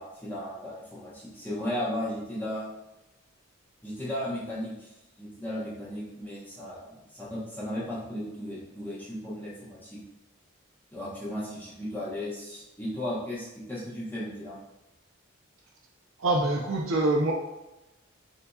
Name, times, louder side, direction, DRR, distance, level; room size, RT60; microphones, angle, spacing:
voice 1, 0.0-2.7 3.8-10.0 10.9-14.6, left 1 dB, 10° left, -7 dB, 1.0 m, -35 dB
voice 2, 16.2-17.3, right 2 dB, 80° right, 0 dB, 0.6 m, -25 dB
6.8 x 2.8 x 2.3 m, 0.96 s
head